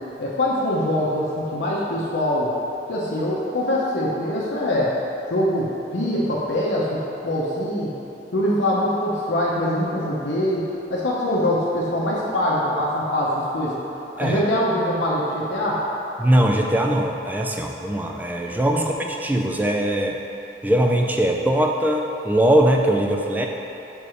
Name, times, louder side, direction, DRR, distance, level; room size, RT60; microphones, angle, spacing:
voice 1, 0.2-2.5 2.9-4.9 5.3-7.0 7.2-7.9 8.3-10.6 10.9-13.8 14.2-15.8 18.7-18.8, left 1 dB, 85° left, -6 dB, 0.9 m, -23 dB
voice 2, 16.2-20.2 20.6-23.5, right 1 dB, 10° right, 1 dB, 0.4 m, -21 dB
5.3 x 4.7 x 4.9 m, 2.9 s
head